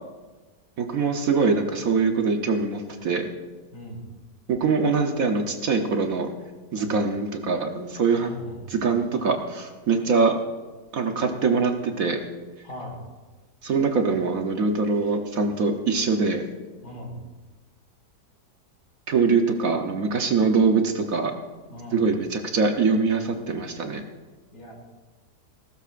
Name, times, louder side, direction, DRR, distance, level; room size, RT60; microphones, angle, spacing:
voice 1, 0.8-3.3 4.5-6.3 6.7-8.3 8.7-10.3 10.9-12.2 13.6-16.4 19.1-21.3 21.9-24.0, right 4 dB, 60° right, 4 dB, 1.2 m, -23 dB
voice 2, 3.7-4.0 6.8-7.0 8.2-8.7 12.6-13.0 16.8-17.2 21.7-22.0 24.5-24.7, equal, 65° left, -2 dB, 3.7 m, -39 dB
19.5 x 13.0 x 2.5 m, 1.3 s
omnidirectional pair, 1.8 m